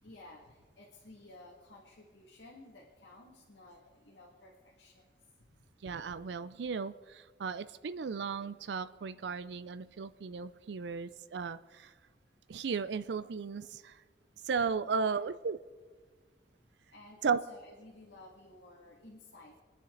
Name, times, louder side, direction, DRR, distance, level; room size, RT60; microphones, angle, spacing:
voice 1, 0.0-5.1 14.9-15.2 16.9-19.6, left 2 dB, 75° left, -4 dB, 2.2 m, -55 dB
voice 2, 5.8-11.9 12.5-14.0 14.4-15.6 17.2-17.4, right 5 dB, 70° right, 14 dB, 0.4 m, -35 dB
23.5 x 10.0 x 3.9 m, 1.4 s
head